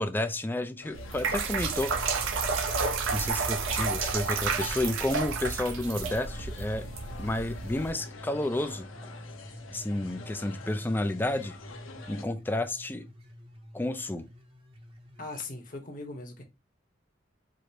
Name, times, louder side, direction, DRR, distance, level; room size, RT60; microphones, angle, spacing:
voice 1, 0.0-1.9 3.1-6.8 7.2-9.1 9.7-11.6 12.1-13.0 13.7-14.3, left 1 dB, 10° left, 0.3 m, -31 dB
sound 1, 0.8-12.2, left 5 dB, 85° left, 0.7 m, -47 dB
sound 2, 0.9-7.9, right 5 dB, 80° right, 0.6 m, -31 dB
sound 3, 1.6-15.4, equal, 25° right, 0.7 m, -47 dB
voice 2, 15.2-16.4, left 3 dB, 40° left, 1.0 m, -39 dB
4.9 x 2.1 x 4.2 m
head